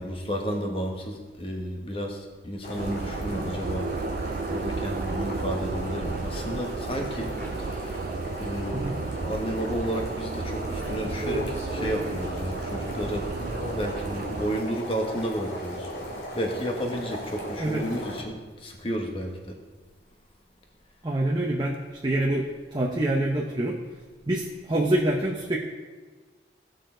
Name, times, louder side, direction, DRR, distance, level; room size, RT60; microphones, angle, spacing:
voice 1, 0.0-3.9 4.5-8.0 8.4-13.3 13.6-15.9 16.3-19.6, equal, 30° left, 2 dB, 1.4 m, -32 dB
sound 1, 2.6-18.2, equal, 65° left, 2.2 m, -37 dB
sound 2, 2.8-14.6, right 4 dB, 50° right, 0.3 m, -34 dB
sound 3, 7.4-8.3 10.8-14.0, equal, 15° left, 2.5 m, -37 dB
voice 2, 21.0-21.8 22.0-23.8 24.3-25.6, right 1 dB, 25° right, -2 dB, 0.8 m, -26 dB
17.5 x 6.6 x 3.9 m, 1.3 s
head